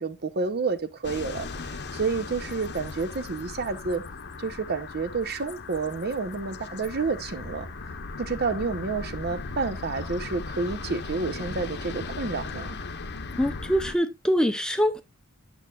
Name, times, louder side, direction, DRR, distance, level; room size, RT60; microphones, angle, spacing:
voice 1, 0.0-4.0 4.4-7.7 8.2-12.8, right 4 dB, 45° right, 0.7 m, -30 dB
sound 1, 1.0-14.0, left 3 dB, 50° left, 0.8 m, -37 dB
voice 2, 13.4-15.0, equal, 5° left, 0.5 m, -24 dB
8.8 x 7.6 x 2.4 m
head